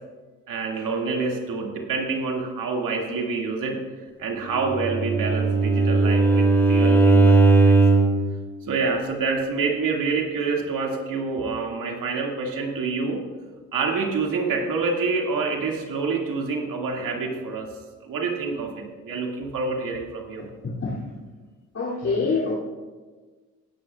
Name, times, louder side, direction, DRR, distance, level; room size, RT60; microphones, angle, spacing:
voice 1, 0.5-3.8 4.2-8.0 8.7-13.2 13.7-17.7 18.0-20.5, right 4 dB, 70° right, 0 dB, 2.3 m, -27 dB
Bowed string instrument, 4.6-8.2, right 3 dB, 5° left, 2.5 m, -17 dB
voice 2, 21.7-22.5, left 4 dB, 50° left, -8 dB, 2.9 m, -24 dB
17.0 x 10.0 x 2.4 m, 1.3 s
supercardioid pair, 60°, 34 cm